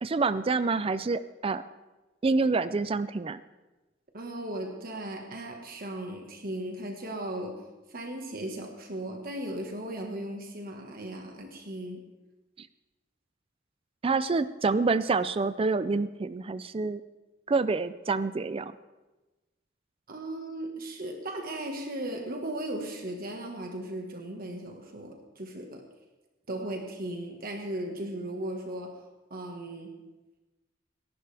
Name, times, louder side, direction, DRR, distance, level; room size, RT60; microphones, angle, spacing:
voice 1, 0.0-1.6 2.2-3.4 12.6-12.7 14.0-17.0 17.5-18.7, right 4 dB, 30° right, 13 dB, 0.4 m, -27 dB
voice 2, 4.1-7.6 7.9-12.0 20.1-25.9 26.5-29.0 29.3-29.9, right 1 dB, 50° right, 2 dB, 1.5 m, -37 dB
28.5 x 11.5 x 3.4 m, 1.1 s
head